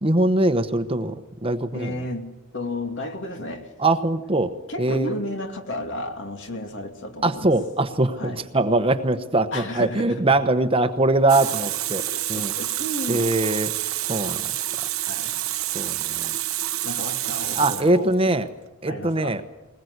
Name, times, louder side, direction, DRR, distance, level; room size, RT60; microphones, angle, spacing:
voice 1, 0.0-1.1 1.4-1.9 3.8-4.5 4.8-5.2 7.2-12.5 13.1-13.7 14.1-14.5 15.7-16.3 17.6-18.5 18.8-19.4, right 2 dB, 25° right, 9 dB, 1.0 m, -22 dB
voice 2, 1.7-2.2 2.5-3.7 4.7-7.5 8.2-8.5 9.5-10.2 12.1-13.2 15.0-15.3 16.8-18.1 18.9-19.4, left 1 dB, 60° left, 4 dB, 2.8 m, -32 dB
Water tap faucet, 11.3-18.3, right 14 dB, 80° right, 1.1 m, -28 dB
21.0 x 20.5 x 8.1 m, 1.0 s
head